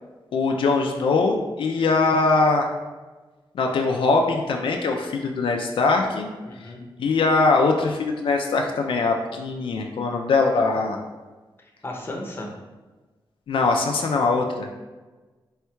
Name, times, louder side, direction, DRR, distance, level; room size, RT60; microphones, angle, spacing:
voice 1, 0.3-2.7 3.5-6.3 6.6-6.7 7.0-11.0 13.5-14.7, left 3 dB, 75° left, 2 dB, 0.4 m, -22 dB
voice 2, 6.5-6.8 11.6-12.5, left 1 dB, 25° left, 0 dB, 0.6 m, -35 dB
4.4 x 3.5 x 2.2 m, 1.2 s
wide cardioid pair, 135°, 9 cm